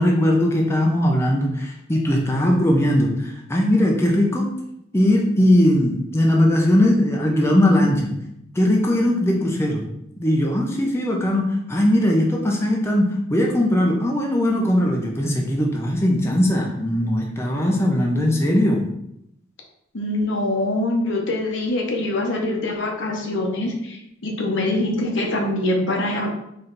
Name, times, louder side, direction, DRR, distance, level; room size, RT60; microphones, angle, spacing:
voice 1, 0.0-4.5 4.9-8.1 8.5-9.9 10.2-18.9, left 1 dB, 15° left, -1 dB, 0.6 m, -19 dB
voice 2, 19.9-26.3, left 1 dB, 65° left, 1 dB, 0.9 m, -24 dB
4.2 x 3.3 x 3.9 m, 0.78 s
head